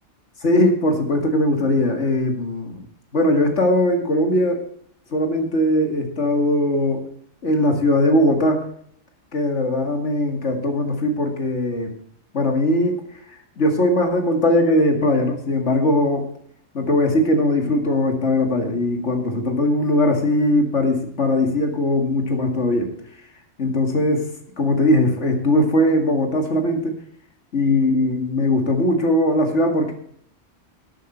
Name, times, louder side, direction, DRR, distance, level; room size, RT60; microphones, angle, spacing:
voice 1, 0.4-2.8 3.1-4.6 5.1-7.0 7.4-8.6 9.3-11.9 12.3-13.0 13.6-16.3 16.7-22.9 23.6-24.3 24.6-27.0 27.5-29.9, left 1 dB, 65° left, 3 dB, 2.4 m, -20 dB
12.5 x 9.0 x 4.3 m, 0.65 s
omnidirectional pair, 1.3 m